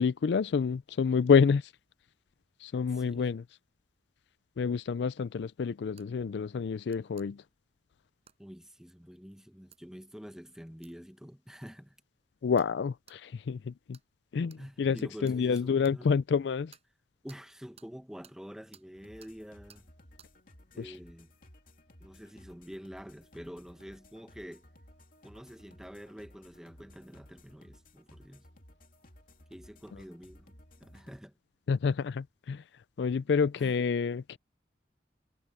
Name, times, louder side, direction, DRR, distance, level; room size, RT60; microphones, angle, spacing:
voice 1, 0.0-1.7 2.6-3.4 4.6-7.4 12.4-14.0 14.3-16.7 20.8-20.9 31.7-32.6 33.0-34.4, left 6 dB, 65° left, 0.4 m, -28 dB
voice 2, 2.9-3.3 8.4-12.0 14.6-16.1 17.2-19.9 20.7-21.3 22.0-24.7 25.2-28.5 29.5-31.3 33.6-33.7, equal, 5° right, 0.9 m, -47 dB
sound 1, 6.0-6.1 6.9-7.3 8.3-8.4 9.7-9.8 10.8-11.0 11.6-11.7 12.6-12.7 13.1-13.2 13.9-14.1 14.5-14.6 15.0-16.0 16.7-16.9 17.3-17.4 17.8-17.9 18.2-18.4 18.7-18.9 19.2-19.3 19.7-19.8 20.2-20.3, right 8 dB, 35° right, 6.5 m, -57 dB
sound 2, 19.0-31.2, left 1 dB, 50° left, 2.7 m, -57 dB
head